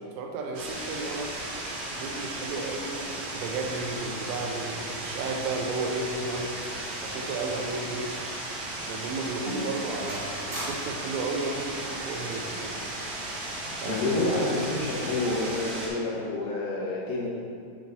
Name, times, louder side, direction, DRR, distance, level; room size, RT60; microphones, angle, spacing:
voice 1, 0.0-1.4 2.0-6.5 7.0-8.2 8.8-12.8 13.7-14.2, right 3 dB, 85° right, 1 dB, 2.5 m, -33 dB
sound 1, 0.5-15.9, right 1 dB, 65° right, 2.2 m, -35 dB
sound 2, 7.4-7.9 8.2-8.4 9.0-9.1 9.6-9.8 10.1-11.1 12.1-12.4, equal, 40° right, 1.5 m, -42 dB
voice 2, 13.8-17.3, left 2 dB, 80° left, -5 dB, 2.8 m, -28 dB
7.9 x 4.2 x 3.8 m, 2.2 s
omnidirectional pair, 4.4 m